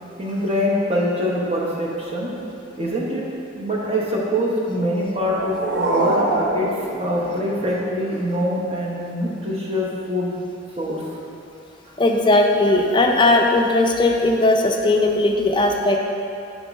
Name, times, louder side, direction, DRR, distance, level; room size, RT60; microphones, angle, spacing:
voice 1, 0.2-2.3 2.8-3.3 3.5-10.3 10.8-11.0, equal, 30° right, -4 dB, 0.9 m, -24 dB
sound 1, 5.0-7.9, right 2 dB, 60° right, 0.7 m, -25 dB
voice 2, 12.0-16.0, left 2 dB, 25° left, 2 dB, 0.4 m, -18 dB
7.0 x 3.7 x 5.1 m, 2.7 s
head